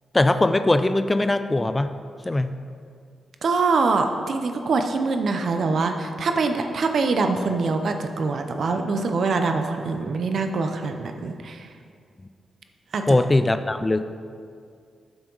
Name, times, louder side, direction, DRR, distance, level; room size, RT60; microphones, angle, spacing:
voice 1, 0.1-1.9 2.3-2.5 13.1-14.0, left 2 dB, 20° left, 11 dB, 0.4 m, -20 dB
voice 2, 3.4-11.7 12.9-13.2, right 4 dB, 65° right, 6 dB, 0.7 m, -24 dB
9.4 x 7.1 x 4.0 m, 2.2 s
cardioid pair, 65°, 0 cm